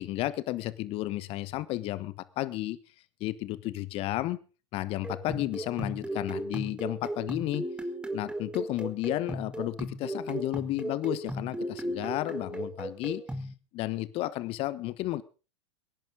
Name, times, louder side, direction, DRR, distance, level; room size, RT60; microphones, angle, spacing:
voice 1, 0.0-2.8 3.2-4.4 4.7-7.7 8.1-13.2 13.7-15.2, left 16 dB, 40° left, 1.2 m, -32 dB
sound 1, 5.0-13.5, right 1 dB, 5° right, 1.6 m, -36 dB
24.0 x 11.0 x 3.8 m
figure-of-eight pair, 90°, 15 cm